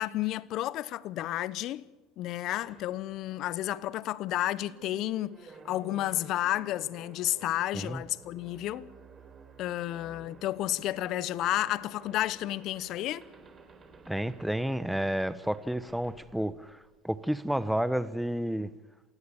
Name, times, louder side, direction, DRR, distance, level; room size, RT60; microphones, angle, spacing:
voice 1, 0.0-1.8 2.2-8.9 9.6-13.2, left 14 dB, 55° left, 0.9 m, -31 dB
sound 1, 2.6-17.4, right 4 dB, 30° right, 3.9 m, -54 dB
voice 2, 14.1-16.8 17.0-18.7, right 1 dB, ahead, 1.2 m, -30 dB
28.0 x 16.5 x 7.2 m
hypercardioid pair, 80°, 0 cm